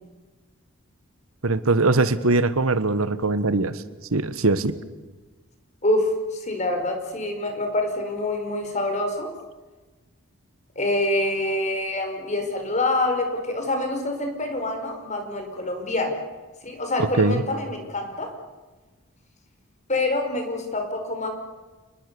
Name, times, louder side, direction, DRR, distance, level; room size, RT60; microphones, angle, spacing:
voice 1, 1.4-3.8 4.1-4.7 17.0-17.4, right 3 dB, 75° right, 14 dB, 1.3 m, -21 dB
voice 2, 5.8-9.3 10.7-16.2 16.6-18.3 19.9-21.3, left 2 dB, 35° left, 5 dB, 5.0 m, -26 dB
29.5 x 20.5 x 7.0 m, 1.2 s
head